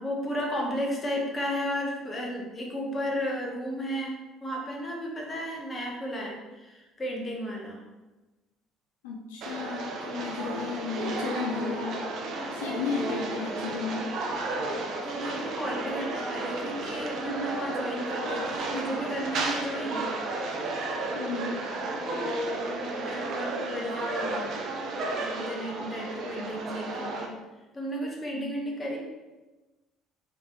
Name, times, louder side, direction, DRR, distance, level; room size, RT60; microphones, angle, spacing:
voice 1, 0.0-7.8 15.0-20.1 22.1-24.5 25.1-27.4 27.7-29.0, equal, 25° left, 0 dB, 1.1 m, -33 dB
voice 2, 9.0-12.1 12.5-14.1 21.1-21.6 28.3-28.5, left 5 dB, 70° left, -1 dB, 0.5 m, -33 dB
sound 1, 9.4-27.3, right 2 dB, 50° right, 0.6 m, -33 dB
3.4 x 3.1 x 3.8 m, 1.1 s
figure-of-eight pair, 55°, 0 cm